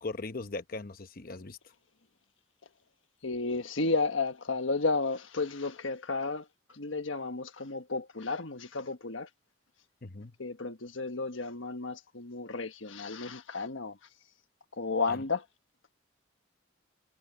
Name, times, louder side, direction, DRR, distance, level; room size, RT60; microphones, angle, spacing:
voice 1, 0.0-1.6 10.0-10.3 15.1-15.2, left 3 dB, 45° left, 0.9 m, -39 dB
voice 2, 3.2-9.3 10.4-14.0 14.7-15.4, left 3 dB, 75° left, 1.4 m, -33 dB
head